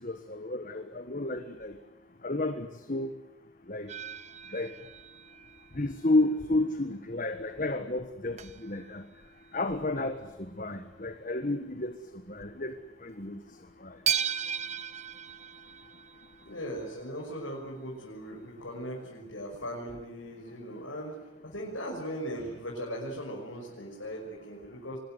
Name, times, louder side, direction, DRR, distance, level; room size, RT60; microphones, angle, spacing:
voice 1, 0.0-1.7 2.2-3.1 3.7-3.9 4.5-4.7 5.7-9.0 9.5-12.0 12.3-12.7 13.0-13.4 13.8-14.0, left 2 dB, 40° left, 8 dB, 1.5 m, -31 dB
sound 1, 3.9-6.4 6.8-7.0 7.5-7.6 7.8-7.9 8.4-10.5 10.9-11.1 11.4-11.5 12.1-12.3 12.7-12.8 14.1-17.0 18.2-18.3 18.7-18.8, right 8 dB, 35° right, 0.9 m, -37 dB
voice 2, 16.4-21.2 21.4-25.0, equal, 85° left, -3 dB, 6.4 m, -38 dB
24.5 x 21.0 x 9.3 m, 1.0 s
head